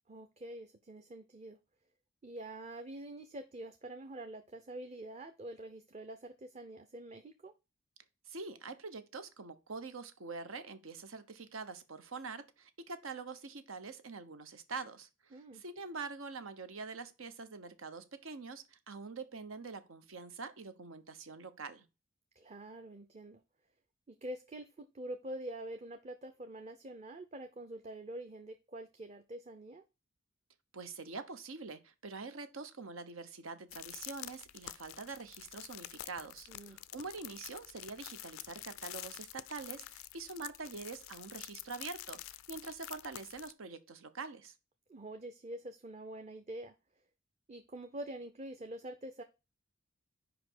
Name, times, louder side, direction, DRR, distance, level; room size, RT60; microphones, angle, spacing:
voice 1, 0.1-1.6 2.2-7.5 15.3-15.6 22.4-23.4 24.1-29.8 36.5-36.8 44.9-46.7 47.5-49.2, right 1 dB, 35° right, 0.6 m, -46 dB
voice 2, 8.3-21.8 30.7-44.5, right 4 dB, 85° right, 1.0 m, -45 dB
sound 1, 33.7-43.5, left 14 dB, 90° left, 0.4 m, -48 dB
5.1 x 5.1 x 6.1 m
head